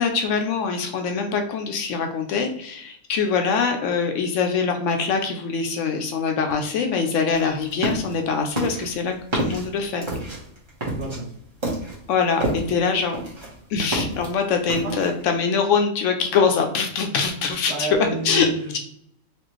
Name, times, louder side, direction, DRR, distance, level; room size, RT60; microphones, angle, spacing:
voice 1, 0.0-10.1 12.1-13.2 13.7-17.9 18.2-18.5, left 5 dB, 70° left, 4 dB, 0.9 m, -23 dB
sound 1, 7.3-8.2 8.6-12.8 13.1-14.3 14.7-15.2, right 1 dB, 25° right, 0.9 m, -28 dB
voice 2, 10.9-11.3 14.8-15.0 17.7-18.8, right 3 dB, 60° right, -1 dB, 1.1 m, -30 dB
4.2 x 2.4 x 3.0 m, 0.70 s
omnidirectional pair, 1.4 m